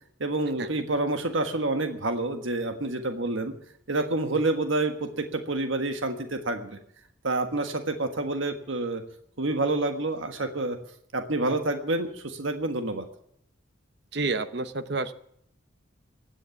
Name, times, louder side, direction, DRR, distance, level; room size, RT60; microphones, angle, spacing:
voice 1, 0.2-3.5 3.9-6.8 7.2-9.0 9.4-10.8 11.1-13.0, right 2 dB, 80° right, 7 dB, 1.5 m, -28 dB
voice 2, 14.1-15.1, right 3 dB, 55° right, 12 dB, 0.9 m, -29 dB
16.0 x 10.0 x 7.1 m, 0.70 s
head